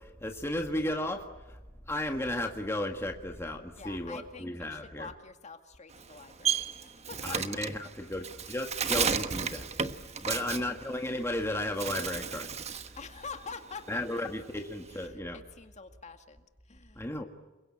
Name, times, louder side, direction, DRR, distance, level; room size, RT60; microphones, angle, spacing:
voice 1, 0.0-1.6 1.9-5.1 7.2-9.7 10.2-12.5 13.9-15.4 17.0-17.2, left 1 dB, 15° left, 3 dB, 1.8 m, -34 dB
voice 2, 3.8-7.4 9.9-10.5 13.0-14.3 14.9-17.2, left 4 dB, 35° left, 6 dB, 2.2 m, -47 dB
Bird, 5.9-11.4 11.7-13.0 13.3-15.1, right 6 dB, 35° right, 1.2 m, -33 dB
28.5 x 23.0 x 8.9 m, 1.2 s
head